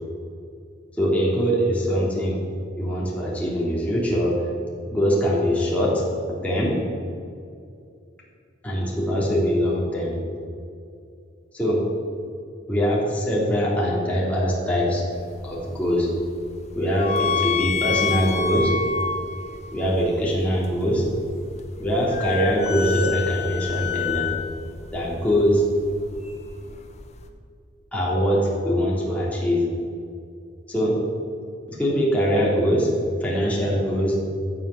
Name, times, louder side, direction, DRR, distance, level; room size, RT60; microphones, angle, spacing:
voice 1, 1.0-2.4 2.8-4.5 4.9-6.0 6.4-6.7 8.6-10.1 11.5-11.8 12.7-15.0 15.4-16.1 16.7-18.7 19.7-21.0 21.8-24.3 24.9-25.6 27.9-29.6 30.7-31.0 31.7-32.9 33.2-34.1, equal, 5° left, -5 dB, 3.2 m, -22 dB
sound 1, 15.1-27.3, left 6 dB, 35° left, 1.0 m, -30 dB
13.5 x 7.4 x 7.1 m, 2.4 s
head